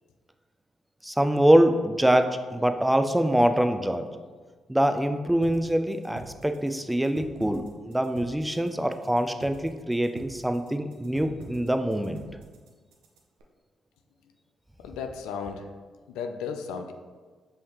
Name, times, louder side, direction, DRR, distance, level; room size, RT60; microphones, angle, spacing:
voice 1, 1.0-4.1 4.7-12.2, right 1 dB, 10° right, 8 dB, 0.4 m, -24 dB
sound 1, 5.4-13.4, right 3 dB, 85° right, 0.5 m, -46 dB
voice 2, 14.8-15.7 16.1-16.9, left 6 dB, 85° left, 5 dB, 0.3 m, -34 dB
5.4 x 3.2 x 2.9 m, 1.4 s
supercardioid pair, 50°, 0 cm